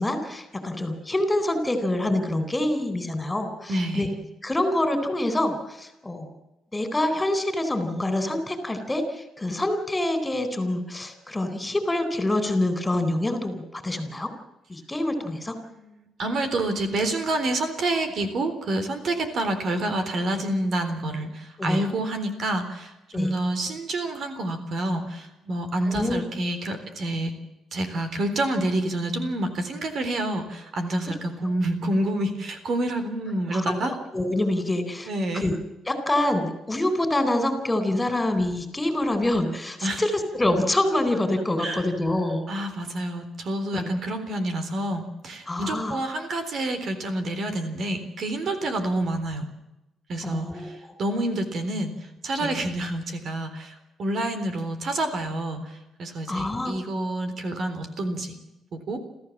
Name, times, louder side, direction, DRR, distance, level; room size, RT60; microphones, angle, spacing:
voice 1, 0.0-4.1 4.4-6.3 6.7-14.3 14.7-15.5 21.6-21.8 23.1-23.3 25.9-26.2 33.5-35.5 35.9-42.5 43.7-43.9 45.5-46.0 50.2-50.7 52.4-52.5 56.3-56.8, left 1 dB, 15° left, 8 dB, 4.2 m, -26 dB
voice 2, 3.7-4.1 15.8-27.3 27.7-33.9 35.1-35.5 39.8-40.0 41.6-41.9 42.5-49.4 50.1-51.9 52.2-58.3 58.7-59.0, right 1 dB, 60° right, 8 dB, 3.8 m, -28 dB
27.0 x 14.5 x 7.5 m, 0.95 s
cardioid pair, 90°, 0 cm